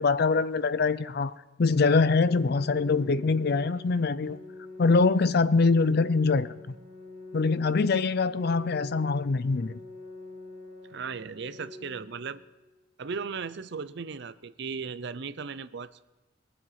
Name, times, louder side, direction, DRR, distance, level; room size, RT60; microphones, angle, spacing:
voice 1, 0.0-1.3 1.6-4.4 4.8-6.5 7.3-9.8, left 4 dB, 55° left, 0.5 m, -24 dB
Organ, 1.8-12.8, left 2 dB, 30° right, 2.9 m, -46 dB
voice 2, 10.9-12.4 13.0-16.0, right 5 dB, 60° right, 0.6 m, -36 dB
22.5 x 7.7 x 5.7 m
head